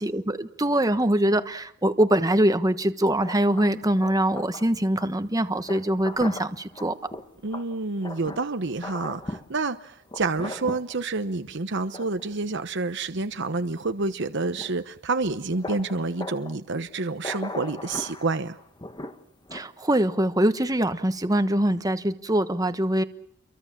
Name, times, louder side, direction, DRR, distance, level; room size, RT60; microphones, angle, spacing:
voice 1, 0.0-6.9 19.5-23.0, right 1 dB, 20° right, 1.3 m, -23 dB
sound 1, 3.2-4.7 5.0-5.1 5.6-8.5 8.8-9.5 10.1-11.0 11.9-12.3 14.5-14.7 15.2-15.3 15.6-16.6 17.2-19.7, left 2 dB, 20° left, 1.4 m, -38 dB
voice 2, 7.4-18.6, right 3 dB, 60° right, 1.0 m, -28 dB
29.5 x 23.5 x 7.4 m
head